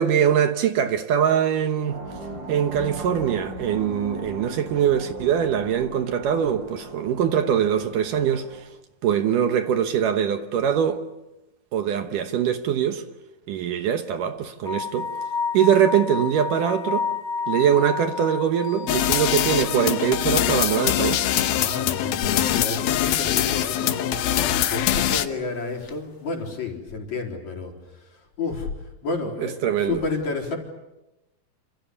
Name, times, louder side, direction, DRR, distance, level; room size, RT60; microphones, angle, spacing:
voice 1, 0.0-2.0 2.5-8.7 9.0-11.0 11.7-13.0 13.5-15.1 15.5-17.1 17.5-21.3 29.4-30.0, right 9 dB, 70° right, 2.5 m, -22 dB
sound 1, 1.9-8.6, equal, 25° right, 4.9 m, -38 dB
sound 2, 14.6-22.4 22.6-22.7 25.9-26.0, left 5 dB, 35° left, 1.7 m, -31 dB
sound 3, 18.9-25.3, left 11 dB, 80° left, 3.0 m, -23 dB
voice 2, 21.6-24.2 24.7-30.6, left 3 dB, 50° left, 5.4 m, -31 dB
28.0 x 27.5 x 7.0 m
omnidirectional pair, 4.3 m